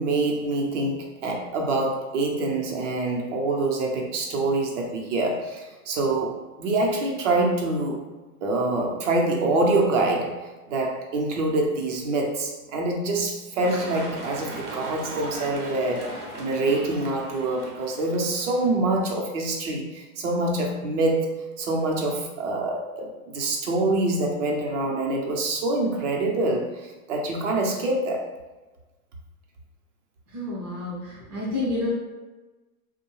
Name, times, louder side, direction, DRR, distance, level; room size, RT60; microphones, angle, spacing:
voice 1, 0.0-8.0 8.4-28.3, right 2 dB, 50° right, 0 dB, 0.7 m, -25 dB
sound 1, 13.6-18.7, right 2 dB, 80° right, 0.9 m, -37 dB
voice 2, 30.3-31.9, left 2 dB, 20° right, -10 dB, 0.3 m, -29 dB
2.7 x 2.2 x 3.0 m, 1.2 s
hypercardioid pair, 150°, 45 cm